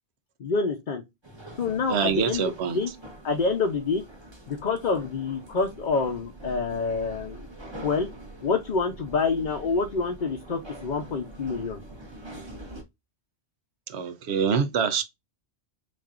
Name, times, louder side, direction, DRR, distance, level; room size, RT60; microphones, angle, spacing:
voice 1, 0.4-1.0 1.6-2.9 3.2-4.0 4.5-7.5 7.8-8.1 8.4-11.8, left 4 dB, 50° left, 0.8 m, -27 dB
sound 1, 1.2-12.8, right 1 dB, 25° right, 1.2 m, -44 dB
voice 2, 1.9-2.8 13.9-15.0, right 6 dB, 75° right, 1.0 m, -25 dB
6.2 x 2.6 x 2.4 m
omnidirectional pair, 1.1 m